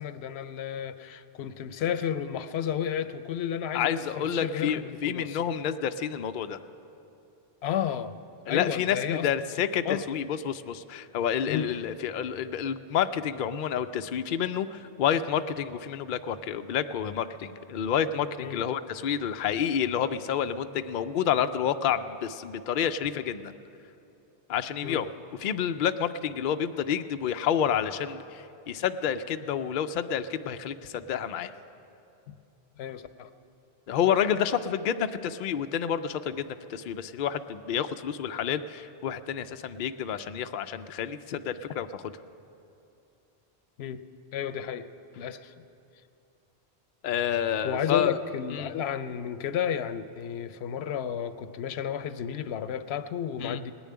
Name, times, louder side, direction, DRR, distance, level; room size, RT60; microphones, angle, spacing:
voice 1, 0.0-5.4 7.6-8.1 8.5-9.3 9.8-10.2 11.5-11.7 18.4-18.6 24.8-25.0 32.3-32.4 32.8-33.3 43.8-44.0 44.3-44.9 45.2-45.6 47.6-53.7, left 9 dB, 90° left, 12 dB, 0.9 m, -32 dB
voice 2, 3.7-6.6 8.5-23.5 24.5-25.1 25.4-31.5 33.9-42.0 47.0-48.2 48.5-48.7 53.4-53.6, left 8 dB, 60° left, 9 dB, 0.6 m, -29 dB
19.0 x 7.1 x 9.5 m, 2.7 s
omnidirectional pair, 1.0 m